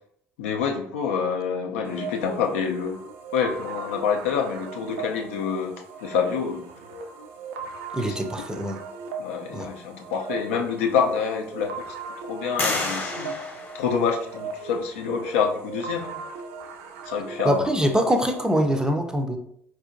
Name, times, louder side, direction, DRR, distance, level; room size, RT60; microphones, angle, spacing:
voice 1, 0.4-3.0 3.3-6.7 8.0-8.2 8.5-8.6 9.2-11.8 12.2-13.3 13.7-16.1 17.1-17.7, left 6 dB, 70° left, 3 dB, 0.4 m, -27 dB
sound 1, 1.8-18.4, right 4 dB, 65° right, 0.4 m, -38 dB
voice 2, 7.9-8.8 9.5-9.7 17.4-19.4, equal, 10° right, 5 dB, 0.5 m, -23 dB
sound 2, 10.3-10.4 11.0-11.7 12.6-14.5, left 3 dB, 25° left, 0.8 m, -31 dB
4.2 x 2.6 x 2.5 m, 0.69 s
figure-of-eight pair, 60°, 7 cm